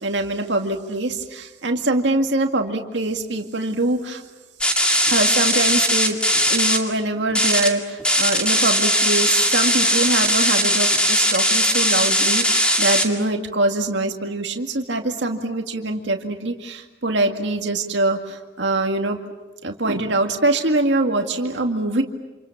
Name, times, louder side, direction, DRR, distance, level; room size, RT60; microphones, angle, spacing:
voice 1, 0.0-4.2 5.1-6.2 6.5-19.2 19.6-22.0, right 2 dB, 90° right, 4 dB, 2.1 m, -23 dB
sound 1, 4.6-6.8 7.3-7.7 8.0-13.0, equal, 5° left, 2.3 m, -19 dB
28.5 x 28.0 x 7.3 m, 1.2 s
head